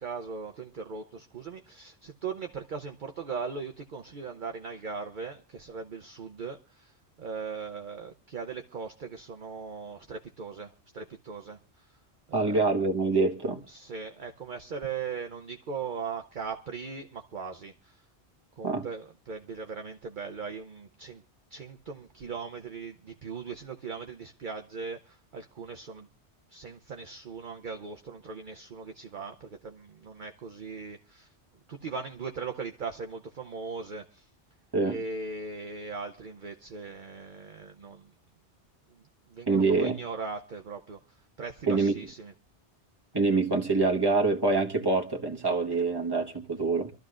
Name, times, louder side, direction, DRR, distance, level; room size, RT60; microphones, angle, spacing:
voice 1, 0.0-11.9 12.3-12.7 13.7-18.0 18.6-21.2 21.5-26.1 26.5-31.3 31.7-34.3 34.8-38.1 39.3-42.3, right 5 dB, 50° right, 0.9 m, -39 dB
voice 2, 12.3-13.6 18.6-18.9 34.7-35.0 39.5-40.0 41.7-41.9 43.1-46.9, right 3 dB, 20° right, 1.4 m, -25 dB
26.0 x 13.0 x 2.5 m
omnidirectional pair, 1.1 m